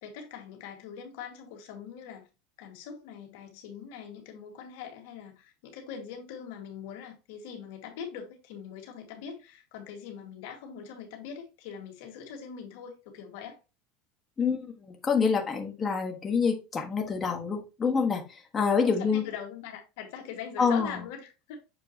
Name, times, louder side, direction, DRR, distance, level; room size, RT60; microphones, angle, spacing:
voice 1, 0.0-2.3 2.6-13.6 18.8-21.6, left 7 dB, 75° left, 1.9 m, -42 dB
voice 2, 14.4-19.2 20.6-21.0, left 5 dB, 20° left, 1.4 m, -27 dB
7.1 x 4.6 x 2.9 m
supercardioid pair, 120°, 0 cm